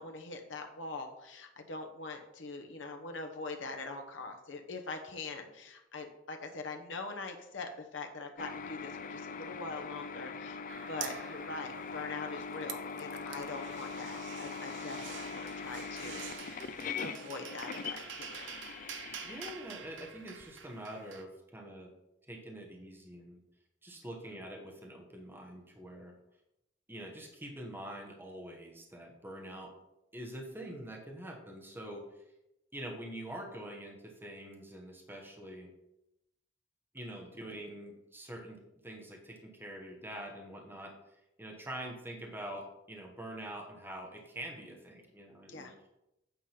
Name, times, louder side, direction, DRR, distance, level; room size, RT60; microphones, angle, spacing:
voice 1, 0.0-10.6 10.9-16.7 17.0-18.5 45.5-45.7, left 3 dB, 90° left, 4 dB, 1.0 m, -43 dB
sound 1, 8.4-20.4, left 5 dB, 45° left, 0.4 m, -42 dB
sound 2, 10.7-12.2 12.4-21.2, right 8 dB, 80° right, 0.7 m, -47 dB
voice 2, 19.2-21.9 22.3-23.4 23.8-26.1 26.9-29.7 30.1-32.0 32.7-35.7 36.9-38.6 38.8-40.9 41.4-45.7, right 1 dB, 10° right, 0 dB, 1.2 m, -45 dB
9.0 x 3.7 x 5.7 m, 0.87 s
head